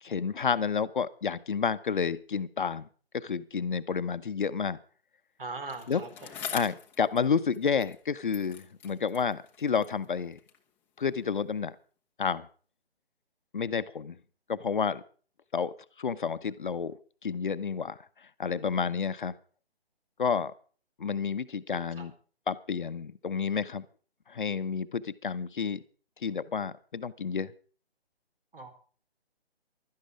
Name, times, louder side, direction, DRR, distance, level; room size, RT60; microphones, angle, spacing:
voice 1, 0.0-2.9 3.1-4.8 5.9-6.0 6.3-10.4 11.0-11.8 12.2-12.5 13.5-14.2 14.5-15.0 15.5-17.0 17.2-18.0 18.4-19.3 20.2-20.5 21.0-22.1 22.5-23.9 24.3-25.8 26.2-27.5, left 6 dB, 50° left, 13 dB, 0.9 m, -30 dB
voice 2, 5.4-6.1 22.0-22.1 28.5-28.7, right 3 dB, 60° right, 8 dB, 4.3 m, -39 dB
Bicycle, 5.7-8.1 8.3-10.7 11.5-11.6, left 8 dB, 5° left, 0.9 m, -44 dB
16.5 x 12.5 x 5.0 m, 0.41 s
figure-of-eight pair, 140°, 32 cm